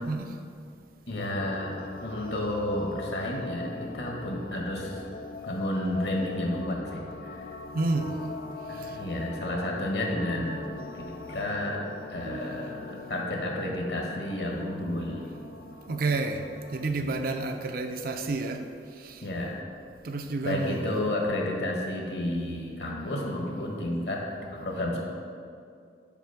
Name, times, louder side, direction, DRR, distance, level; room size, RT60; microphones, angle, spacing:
voice 1, 1.1-5.0 5.4-7.5 8.7-10.7 10.9-11.0 11.3-11.8 12.1-15.3 17.0-17.2 19.2-19.6 20.4-24.2 24.5-25.0, left 1 dB, 70° left, 0 dB, 1.3 m, -31 dB
sound 1, 1.2-16.9, left 3 dB, 50° left, 0.4 m, -42 dB
voice 2, 7.7-8.1 8.8-9.0 15.9-16.4 16.7-18.6 19.0-19.2 20.0-20.8, right 3 dB, 55° right, 6 dB, 0.5 m, -30 dB
sound 2, 7.9-16.6, right 1 dB, 75° right, 0.8 m, -45 dB
6.0 x 4.6 x 5.7 m, 2.4 s
head